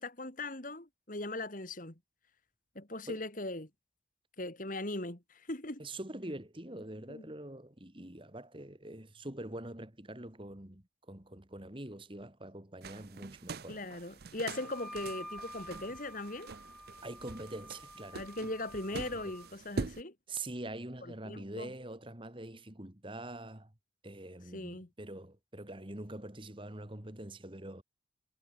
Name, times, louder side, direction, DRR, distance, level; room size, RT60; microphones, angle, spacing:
voice 1, 0.0-2.0 2.7-3.7 4.4-5.8 7.1-7.3 13.7-16.5 18.1-20.1 21.2-21.7 24.5-24.9, left 2 dB, 40° left, 2.6 m, -39 dB
voice 2, 5.8-13.8 17.0-18.3 18.9-19.4 20.3-23.7 24.0-27.8, right 1 dB, 25° right, 2.0 m, -44 dB
sound 1, 12.8-20.0, right 4 dB, 50° right, 0.6 m, -44 dB
Wind instrument woodwind instrument, 14.5-19.5, equal, ahead, 3.7 m, -49 dB
head